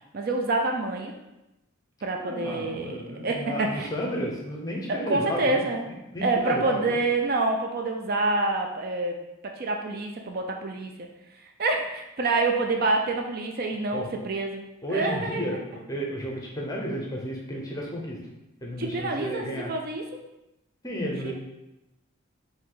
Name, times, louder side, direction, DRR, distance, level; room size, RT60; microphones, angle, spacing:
voice 1, 0.1-1.1 2.0-3.0 3.2-3.9 4.9-5.9 6.2-9.2 9.6-11.1 11.6-14.6 14.9-15.5 18.8-20.0 21.2-21.3, right 2 dB, 45° right, 2 dB, 0.4 m, -27 dB
voice 2, 2.2-5.6 6.1-7.0 13.9-14.1 14.8-18.2 18.6-19.7 20.8-21.3, equal, 15° left, -2 dB, 0.7 m, -32 dB
4.8 x 2.7 x 3.8 m, 0.94 s
head